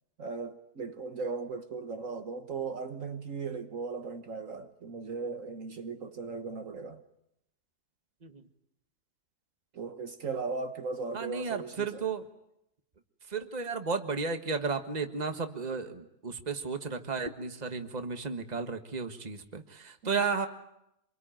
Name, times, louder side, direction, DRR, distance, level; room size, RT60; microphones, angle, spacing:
voice 1, 0.2-7.0 9.7-12.1 20.0-20.1, right 4 dB, 60° right, 1.6 m, -37 dB
voice 2, 11.1-12.3 13.3-20.5, right 5 dB, 30° right, 1.6 m, -33 dB
27.5 x 22.5 x 9.0 m
omnidirectional pair, 1.6 m